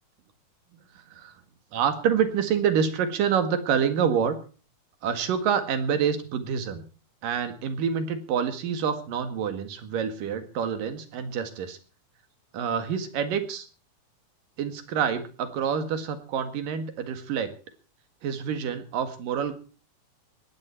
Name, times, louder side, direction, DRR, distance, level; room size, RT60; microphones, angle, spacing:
voice 1, 1.7-4.4 5.0-6.8 7.2-11.8 12.5-13.7 14.6-17.5 18.2-19.5, right 7 dB, 80° right, 9 dB, 3.5 m, -27 dB
19.5 x 15.5 x 4.5 m, 0.37 s
omnidirectional pair, 3.8 m